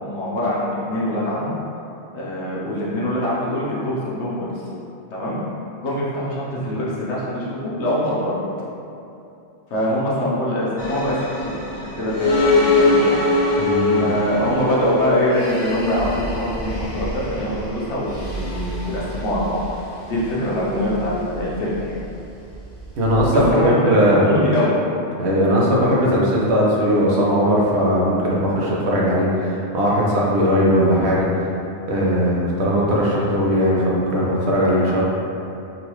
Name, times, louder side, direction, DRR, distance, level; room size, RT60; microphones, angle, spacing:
voice 1, 0.0-1.5 2.1-4.5 5.1-5.4 5.8-8.4 9.7-11.2 11.6-13.2 13.6-13.7 14.0-19.6 20.1-21.9 23.3-24.7, left 1 dB, 80° left, -7 dB, 1.1 m, -23 dB
sound 1, 10.8-23.5, left 2 dB, 30° left, 0.6 m, -24 dB
voice 2, 13.6-14.1 23.0-24.3 25.2-31.3 31.9-35.0, equal, 70° right, -5 dB, 1.0 m, -18 dB
3.9 x 2.3 x 3.0 m, 2.8 s
omnidirectional pair, 1.2 m